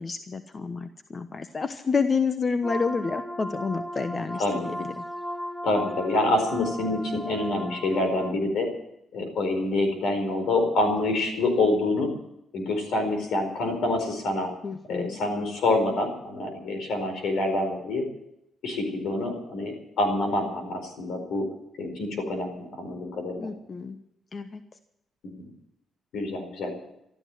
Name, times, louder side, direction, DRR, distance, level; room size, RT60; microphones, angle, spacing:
voice 1, 0.0-5.0 14.6-15.2 23.4-24.0 24.3-24.6, left 5 dB, 40° left, 9 dB, 1.0 m, -29 dB
sound 1, 2.6-8.3, equal, 15° left, 2.2 m, -36 dB
voice 2, 5.6-8.7 9.1-12.1 12.5-14.5 14.9-18.0 18.6-21.5 21.8-23.5 25.4-25.5 26.1-26.7, left 2 dB, 80° left, 5 dB, 4.6 m, -26 dB
14.0 x 12.5 x 7.8 m, 0.80 s
cardioid pair, 70°, 0 cm